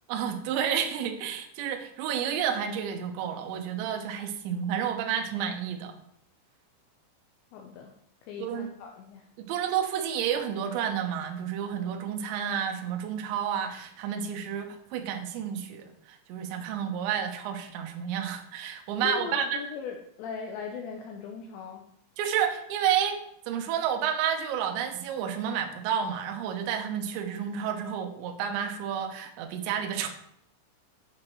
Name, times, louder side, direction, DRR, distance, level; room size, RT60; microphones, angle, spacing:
voice 1, 0.1-6.0 8.4-8.7 9.5-19.5 22.2-30.1, right 8 dB, 75° right, 5 dB, 2.9 m, -30 dB
voice 2, 7.5-7.9 8.2-9.3 19.0-21.9, left 6 dB, 90° left, 2 dB, 2.5 m, -39 dB
8.9 x 5.9 x 4.5 m, 0.72 s
omnidirectional pair, 5.9 m